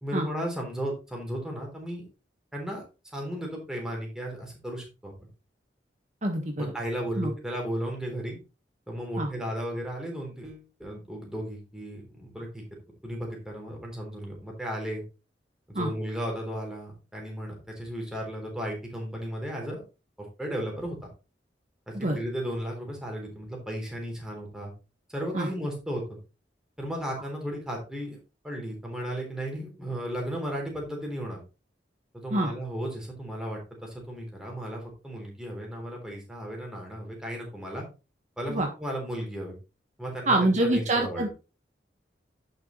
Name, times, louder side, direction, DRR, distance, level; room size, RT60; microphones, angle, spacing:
voice 1, 0.0-2.1 2.5-2.8 3.1-5.1 6.6-8.4 8.9-12.6 13.0-15.0 15.7-19.8 20.2-21.0 21.9-24.7 25.1-26.2 26.8-28.2 28.4-31.4 32.1-37.8 38.4-39.6 40.0-41.3, equal, 5° right, -1 dB, 3.7 m, -35 dB
voice 2, 6.2-6.7 7.2-7.3 9.2-9.3 15.7-15.9 21.9-22.2 25.3-25.5 32.3-32.5 38.5-38.7 40.3-41.3, right 1 dB, 45° right, 2 dB, 1.6 m, -25 dB
10.5 x 6.7 x 3.2 m, 0.30 s
head